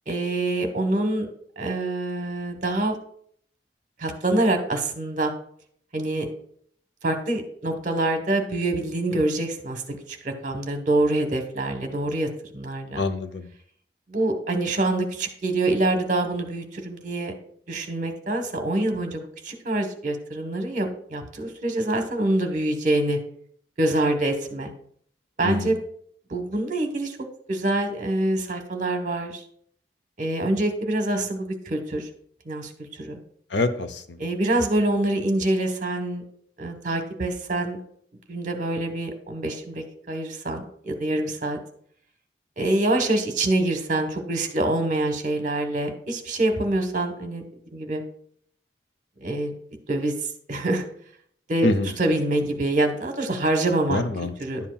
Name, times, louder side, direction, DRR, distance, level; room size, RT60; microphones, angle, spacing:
voice 1, 0.1-1.3 1.6-2.9 4.0-5.3 5.9-6.3 7.0-13.0 14.1-17.3 17.7-23.2 23.8-24.7 25.4-25.8 26.3-27.2 27.5-29.4 30.2-32.1 32.4-33.2 34.2-36.2 36.6-37.8 38.3-41.6 42.6-47.4 47.7-48.0 49.2-49.5 49.9-50.8 51.5-51.7 52.0-54.0 54.4-54.6, right 2 dB, 45° right, 6 dB, 1.1 m, -25 dB
voice 2, 13.0-13.5 25.4-25.7 33.5-34.2 51.6-51.9 53.9-54.3, left 2 dB, 75° left, 10 dB, 0.6 m, -25 dB
11.0 x 7.2 x 2.3 m, 0.63 s
head